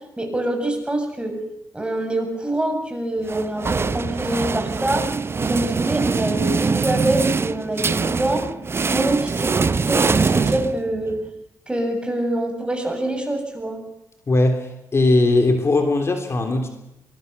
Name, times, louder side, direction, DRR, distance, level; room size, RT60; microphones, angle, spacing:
voice 1, 0.2-1.3 1.7-5.1 5.4-8.4 8.8-11.1 11.7-13.8, right 1 dB, 15° right, 3 dB, 7.5 m, -25 dB
sound 1, 3.3-11.2, right 4 dB, 35° right, 0.8 m, -23 dB
voice 2, 14.3-16.7, left 2 dB, 40° left, 5 dB, 3.3 m, -19 dB
23.0 x 22.0 x 6.9 m, 0.86 s
cardioid pair, 70°, 7 cm